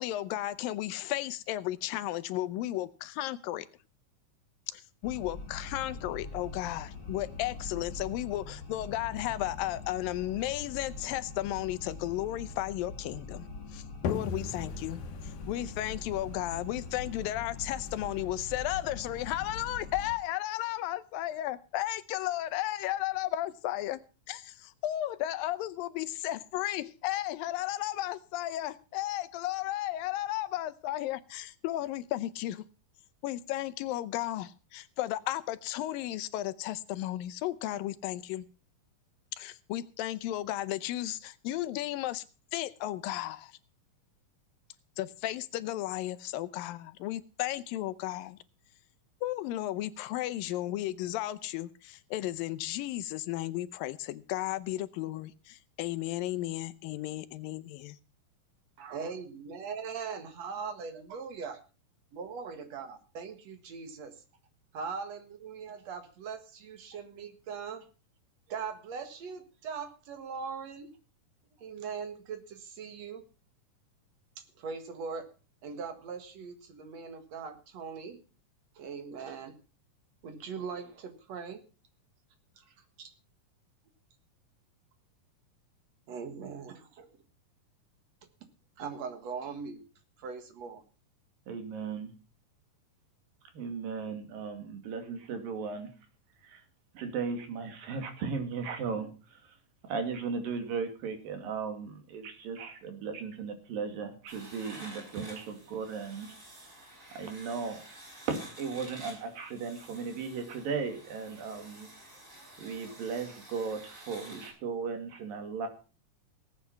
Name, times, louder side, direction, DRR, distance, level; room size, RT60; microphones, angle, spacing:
voice 1, 0.0-3.7 4.7-13.5 13.7-24.0 24.3-32.6 33.2-38.5 39.4-42.2 42.5-43.6 45.0-48.4 49.2-58.0, left 14 dB, 85° left, 2.6 m, -34 dB
sound 1, 5.0-20.2, left 3 dB, 35° left, 2.1 m, -43 dB
sound 2, 14.0-19.5, left 6 dB, 70° left, 2.6 m, -41 dB
voice 2, 58.8-61.6 62.1-64.1 64.7-67.8 68.5-70.9 71.6-73.2 74.4-75.3 75.6-78.2 78.8-79.6 80.2-81.6 82.6-83.1 86.1-87.2 88.8-89.8 90.2-90.8, right 5 dB, 55° right, 2.5 m, -40 dB
voice 3, 91.5-92.1 93.5-95.9 96.4-96.6 96.9-99.5 99.8-106.3 107.2-107.8 108.3-111.9 112.6-115.7, right 5 dB, 80° right, 4.0 m, -36 dB
sound 3, 104.3-114.5, right 1 dB, 20° right, 5.9 m, -50 dB
18.0 x 8.6 x 5.7 m
omnidirectional pair, 3.9 m